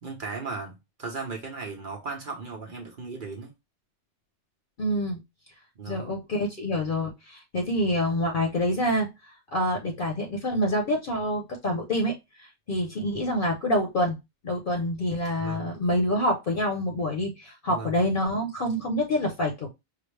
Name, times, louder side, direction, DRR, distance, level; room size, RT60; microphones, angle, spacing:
voice 1, 0.0-3.5 5.8-6.1 15.4-15.7 17.7-18.0, right 4 dB, 50° right, 0.9 m, -36 dB
voice 2, 4.8-5.2 5.9-9.1 9.5-14.2 14.4-19.7, left 1 dB, 50° left, 0.9 m, -27 dB
4.9 x 2.0 x 3.1 m
omnidirectional pair, 1.2 m